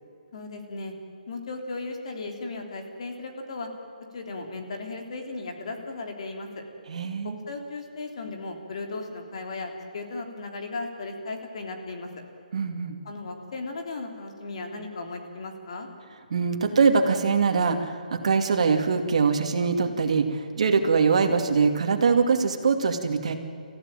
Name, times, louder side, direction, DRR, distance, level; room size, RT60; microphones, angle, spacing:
voice 1, 0.3-0.9 1.3-3.7 4.1-6.6 7.2-12.1 13.0-15.9, left 3 dB, 45° left, 3 dB, 3.3 m, -36 dB
voice 2, 6.9-7.4 12.5-13.0 16.3-23.4, right 5 dB, 50° right, 5 dB, 2.5 m, -23 dB
27.5 x 15.5 x 9.2 m, 2.6 s
hypercardioid pair, 175°, 4 cm